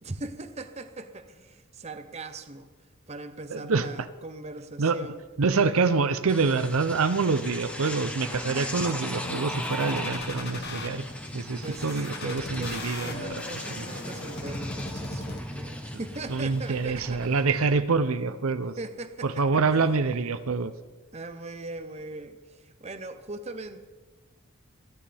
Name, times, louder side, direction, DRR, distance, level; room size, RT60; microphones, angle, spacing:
voice 1, 0.0-2.7 3.1-5.2 11.6-17.3 18.8-19.9 21.1-23.9, right 2 dB, 30° right, 9 dB, 0.8 m, -40 dB
voice 2, 3.5-3.9 4.8-5.0 5.4-11.0 11.3-13.1 13.8-13.9 16.3-18.7 19.2-20.7, right 4 dB, 85° right, 11 dB, 0.7 m, -26 dB
sound 1, 6.3-17.8, left 1 dB, 5° left, 1.1 m, -38 dB
sound 2, 9.1-10.9 11.6-15.6 16.1-17.1, left 2 dB, 50° left, 1.4 m, -38 dB
26.5 x 9.9 x 3.5 m, 1.2 s
head